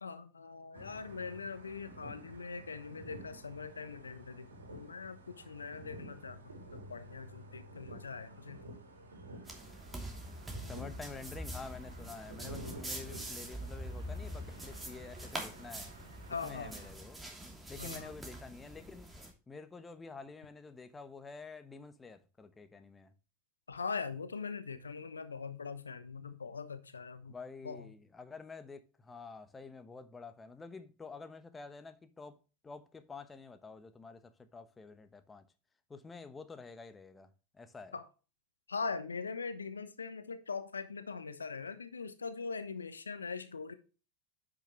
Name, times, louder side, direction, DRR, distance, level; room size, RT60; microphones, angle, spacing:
voice 1, 0.0-8.6 16.3-16.7 17.8-18.1 23.7-27.3 27.6-27.9 37.9-38.0 38.7-43.7, left 5 dB, 85° left, 0.9 m, -41 dB
sound 1, 0.7-16.9, right 1 dB, 80° right, 3.1 m, -51 dB
sound 2, 9.4-19.3, equal, 10° right, 3.0 m, -44 dB
voice 2, 10.6-15.9 16.4-17.2 17.7-19.1 19.5-23.1 27.3-35.4 35.9-37.3 37.5-37.9, left 4 dB, 15° left, 1.1 m, -49 dB
10.0 x 6.2 x 3.2 m
figure-of-eight pair, 85°, 0 cm